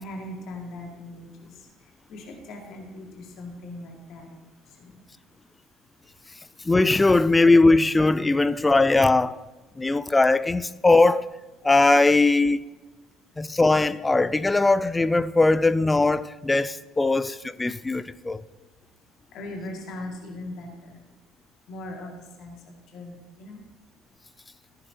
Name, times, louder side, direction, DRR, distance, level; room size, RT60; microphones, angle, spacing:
voice 1, 0.0-1.5 2.1-4.4 4.8-5.0 19.3-21.0 21.7-22.1 22.4-22.6 22.9-23.6, left 1 dB, 50° left, 2.1 m, -39 dB
voice 2, 6.6-9.4 9.8-11.3 11.6-12.6 13.4-18.4, left 2 dB, 15° left, 0.4 m, -20 dB
15.5 x 9.6 x 2.9 m
figure-of-eight pair, 55°, 0 cm